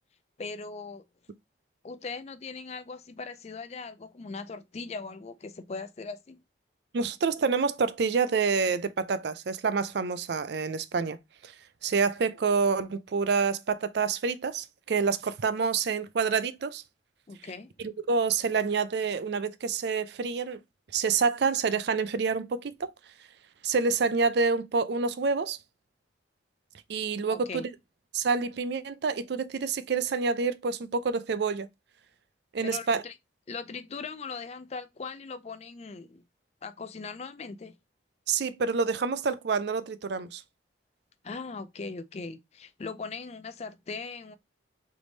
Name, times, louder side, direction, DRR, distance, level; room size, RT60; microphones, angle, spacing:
voice 1, 0.4-1.0 1.8-6.4 17.3-17.7 27.3-27.7 32.6-33.2 33.5-36.2 36.6-37.7 41.2-44.4, left 4 dB, 35° left, 0.4 m, -39 dB
voice 2, 6.9-11.2 11.4-11.5 11.8-16.8 17.8-20.6 20.9-22.9 23.6-25.6 26.9-27.7 28.1-31.7 32.5-33.0 38.3-40.4, right 5 dB, 55° right, 0.4 m, -27 dB
3.4 x 3.2 x 3.8 m
head